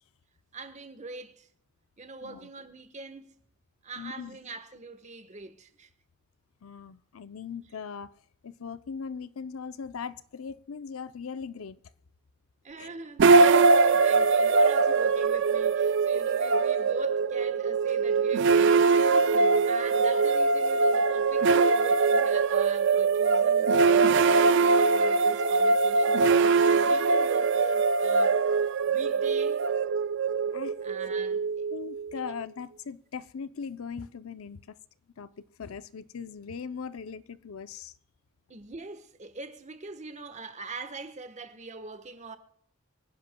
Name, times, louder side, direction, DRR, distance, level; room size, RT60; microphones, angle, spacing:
voice 1, 0.5-1.5 2.0-3.3 3.8-5.9 12.6-18.9 19.7-28.4 28.9-29.6 30.8-31.7 32.2-32.3 38.5-42.4, right 3 dB, 35° right, 1.2 m, -43 dB
voice 2, 4.0-4.4 6.6-8.1 8.4-11.8 12.8-12.9 19.3-19.6 30.5-30.7 31.7-34.6 35.2-35.3 35.6-37.9, left 6 dB, 90° left, 0.6 m, -39 dB
sound 1, 13.2-32.3, right 4 dB, 60° right, 0.4 m, -22 dB
24.5 x 10.5 x 2.2 m
head